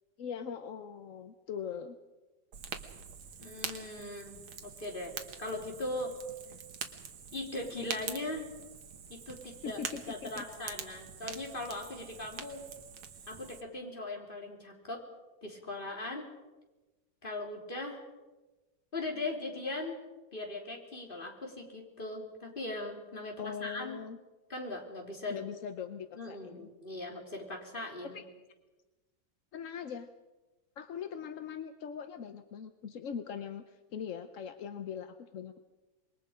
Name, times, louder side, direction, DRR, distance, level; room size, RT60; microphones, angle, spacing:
voice 1, 0.2-2.0 9.4-10.4 23.4-24.2 25.3-26.7 28.0-28.2 29.5-30.1 30.8-35.6, left 7 dB, 55° left, 9 dB, 0.9 m, -41 dB
Fire, 2.5-13.6, right 7 dB, 90° right, 2.2 m, -45 dB
voice 2, 3.4-6.1 7.3-8.5 9.1-9.8 10.1-12.6 13.3-15.0 15.4-16.3 17.2-18.0 18.9-20.0 20.3-24.0 24.5-25.4 26.1-28.2, left 2 dB, 25° left, 1 dB, 3.4 m, -39 dB
26.5 x 22.0 x 5.1 m, 1.2 s
omnidirectional pair, 2.1 m